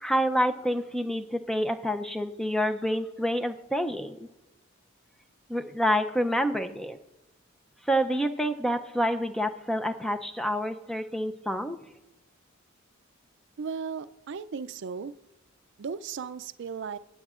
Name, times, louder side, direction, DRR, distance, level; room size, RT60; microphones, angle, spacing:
voice 1, 0.0-4.3 5.5-7.0 7.9-11.8, equal, ahead, 7 dB, 0.5 m, -28 dB
voice 2, 13.6-15.1 15.8-17.0, right 6 dB, 60° right, 15 dB, 0.4 m, -36 dB
17.0 x 8.6 x 2.4 m, 1.0 s
head